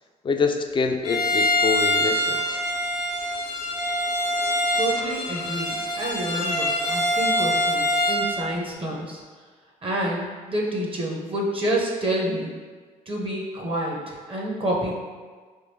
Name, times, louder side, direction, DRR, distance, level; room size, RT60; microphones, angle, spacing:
voice 1, 0.2-2.6, left 5 dB, 25° left, 4 dB, 0.4 m, -25 dB
Bowed string instrument, 1.0-8.3, left 1 dB, 80° left, 0.7 m, -24 dB
voice 2, 4.7-9.2 9.8-12.5 13.1-14.9, right 1 dB, 30° right, -2 dB, 0.6 m, -28 dB
3.5 x 2.5 x 2.7 m, 1.5 s
hypercardioid pair, 45°, 19 cm